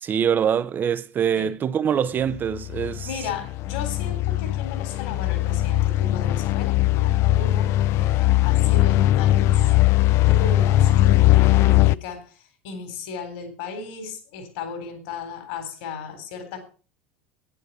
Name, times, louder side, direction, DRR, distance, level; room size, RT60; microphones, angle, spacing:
voice 1, 0.0-3.1, right 8 dB, 35° right, 0.9 m, -24 dB
sound 1, 2.3-12.0, left 15 dB, 50° left, 0.5 m, -20 dB
voice 2, 3.0-9.7 10.2-16.6, left 5 dB, 65° left, 3.7 m, -35 dB
11.0 x 9.6 x 5.4 m
hypercardioid pair, 80°, 6 cm